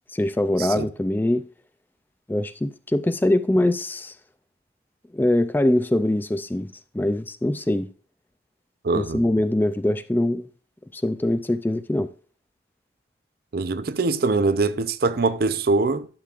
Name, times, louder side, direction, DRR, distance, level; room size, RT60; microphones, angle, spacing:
voice 1, 0.1-1.4 2.3-4.1 5.1-7.9 8.9-10.5 10.9-12.1, left 1 dB, 10° left, 0.3 m, -23 dB
voice 2, 8.8-9.2 13.5-16.1, right 3 dB, 55° right, 0.5 m, -23 dB
12.0 x 7.4 x 2.4 m
head